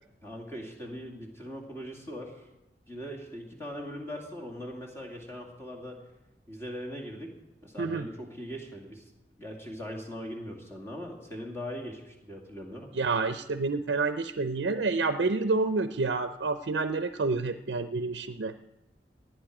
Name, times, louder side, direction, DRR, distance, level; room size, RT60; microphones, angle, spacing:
voice 1, 0.2-2.4 2.9-6.0 6.5-7.3 7.6-9.0 9.4-12.9, equal, 15° left, 0 dB, 2.5 m, -40 dB
voice 2, 12.9-18.5, right 3 dB, 85° right, 10 dB, 0.6 m, -28 dB
19.0 x 11.5 x 4.9 m, 0.96 s
head